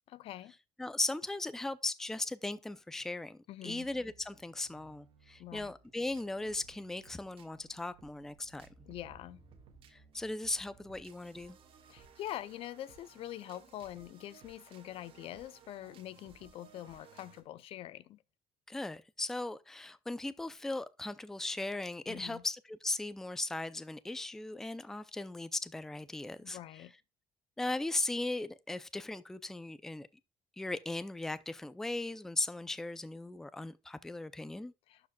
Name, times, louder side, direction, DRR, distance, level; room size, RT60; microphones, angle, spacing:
voice 1, 0.1-0.5 3.5-3.9 5.4-5.7 8.9-9.4 11.9-18.2 22.1-22.4 26.4-26.9 34.9-35.1, left 13 dB, 60° left, 0.5 m, -45 dB
voice 2, 0.8-8.7 9.9-11.6 18.7-26.6 27.6-30.1 30.6-34.7, left 2 dB, 5° left, 0.4 m, -38 dB
sound 1, 3.8-17.4, right 6 dB, 55° right, 1.6 m, -60 dB
sound 2, 8.2-12.5 13.0-13.1, right 2 dB, 35° left, 4.6 m, -66 dB
12.0 x 4.8 x 2.3 m
cardioid pair, 165°, 11 cm